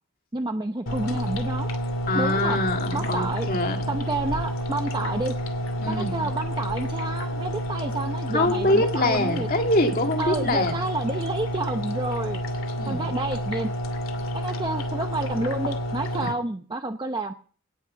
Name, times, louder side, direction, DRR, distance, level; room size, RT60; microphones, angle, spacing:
voice 1, 0.3-1.7 2.1-2.6 2.9-3.5 3.9-5.3 5.9-9.5 10.2-12.4 12.9-13.7 14.3-17.3, right 2 dB, 20° right, 6 dB, 0.7 m, -29 dB
sound 1, 0.9-16.3, equal, 70° left, 2.6 m, -29 dB
voice 2, 2.1-3.8 5.8-6.3 8.3-10.8 12.8-13.1 16.2-16.3, left 1 dB, 45° left, 4 dB, 2.2 m, -24 dB
19.0 x 6.6 x 7.5 m, 0.43 s
head